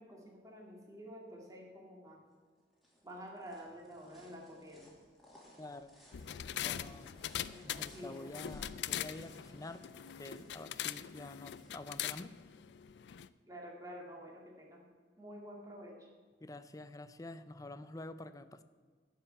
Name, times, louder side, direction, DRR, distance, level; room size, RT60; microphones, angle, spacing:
voice 1, 0.0-2.2 3.0-4.9 6.6-7.1 7.5-8.3 13.5-14.9 15.2-16.1, equal, 20° right, -1 dB, 2.1 m, -50 dB
sound 1, 2.3-13.2, equal, ahead, 2.6 m, -63 dB
voice 2, 5.6-5.9 6.6-7.1 7.6-9.8 10.2-12.3 16.4-18.6, left 2 dB, 20° left, 11 dB, 0.5 m, -48 dB
sound 2, 6.1-13.3, left 10 dB, 80° left, 0.4 m, -42 dB
12.0 x 5.6 x 8.3 m, 1.6 s
head